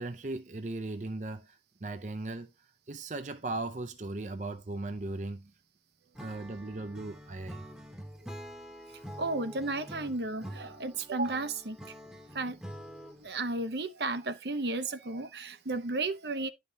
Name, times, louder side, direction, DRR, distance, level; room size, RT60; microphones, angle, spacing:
voice 1, 0.0-5.5 6.2-7.7, right 2 dB, 45° right, 0.5 m, -38 dB
Acoustic guitar / Strum, 6.2-13.4, equal, 5° right, 0.9 m, -46 dB
voice 2, 9.2-11.8 12.3-12.6 13.2-16.5, right 2 dB, 75° right, 0.9 m, -33 dB
11.0 x 5.5 x 2.8 m
head